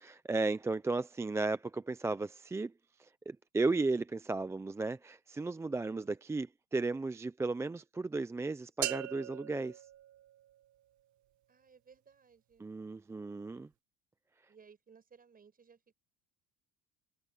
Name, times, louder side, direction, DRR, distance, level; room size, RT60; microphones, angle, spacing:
voice 1, 0.0-2.7 3.0-9.8 12.6-13.7, right 3 dB, 10° right, 0.3 m, -35 dB
voice 2, 5.7-6.2 11.5-12.7 14.5-15.9, right 6 dB, 25° right, 6.2 m, -61 dB
sound 1, 8.8-10.8, right 14 dB, 60° right, 1.7 m, -40 dB
cardioid pair, 135°, 34 cm